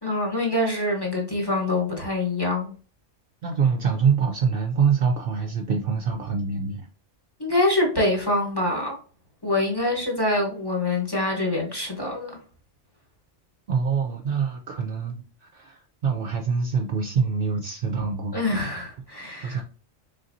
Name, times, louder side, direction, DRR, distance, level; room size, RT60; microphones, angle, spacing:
voice 1, 0.0-2.7 7.4-9.0 9.4-12.4 18.3-19.6, left 2 dB, 20° left, 1.1 m, -25 dB
voice 2, 3.4-6.8 13.7-18.7 19.4-19.6, right 6 dB, 60° right, 0.7 m, -25 dB
3.9 x 3.5 x 2.6 m
omnidirectional pair, 1.2 m